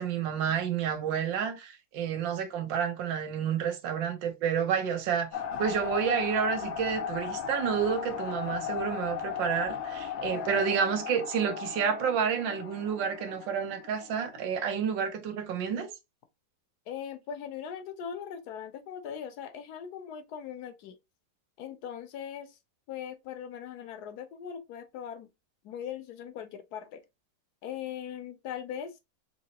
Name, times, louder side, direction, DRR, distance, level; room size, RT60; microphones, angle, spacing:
voice 1, 0.0-15.9, right 7 dB, 85° right, 1.5 m, -30 dB
sound 1, 5.3-14.4, left 8 dB, 85° left, 1.4 m, -36 dB
voice 2, 10.3-10.7 16.9-21.0 21.6-22.6 22.9-25.3 25.6-27.0 27.6-29.0, left 8 dB, 70° left, 1.1 m, -40 dB
3.8 x 2.8 x 2.8 m
omnidirectional pair, 2.0 m